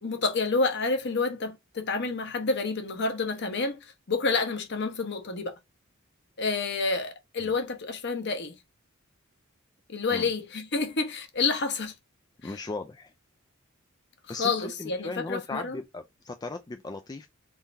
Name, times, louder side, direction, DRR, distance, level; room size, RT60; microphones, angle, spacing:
voice 1, 0.0-5.5 6.4-8.5 9.9-11.9 12.4-12.5 14.4-15.8, left 4 dB, 55° left, 1.1 m, -29 dB
voice 2, 12.4-13.1 14.3-17.3, left 3 dB, 20° left, 0.4 m, -37 dB
3.7 x 2.6 x 4.5 m
head